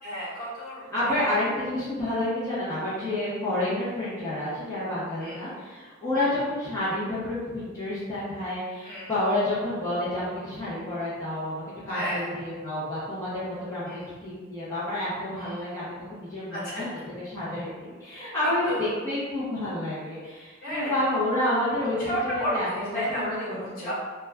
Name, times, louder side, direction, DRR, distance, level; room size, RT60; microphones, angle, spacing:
voice 1, 0.0-0.8 1.1-1.4 3.0-3.1 5.2-5.4 6.1-6.3 8.8-9.1 11.9-12.2 13.9-14.1 15.4-15.6 16.5-16.8 18.7-18.9 20.6-21.1 22.0-23.9, equal, 50° left, -9 dB, 1.1 m, -32 dB
voice 2, 0.9-16.9 17.2-23.9, left 1 dB, 15° left, -12 dB, 0.7 m, -29 dB
2.4 x 2.2 x 3.2 m, 1.4 s
head